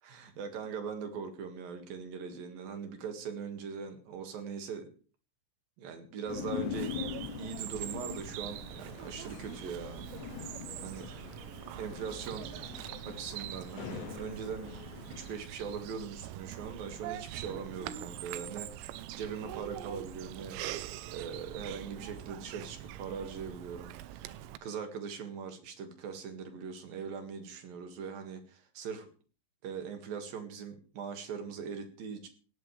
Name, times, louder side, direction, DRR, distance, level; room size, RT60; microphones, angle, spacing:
voice 1, 0.0-4.9 5.8-11.1 11.8-12.5 13.1-14.7 15.1-29.1 29.6-32.3, right 6 dB, 55° right, 6 dB, 3.2 m, -41 dB
sound 1, 6.3-15.3, left 11 dB, 75° left, 2.6 m, -43 dB
Bird vocalization bird call bird song, 6.7-24.6, right 13 dB, 90° right, 3.6 m, -43 dB
18.0 x 17.0 x 3.4 m, 0.38 s
omnidirectional pair, 5.9 m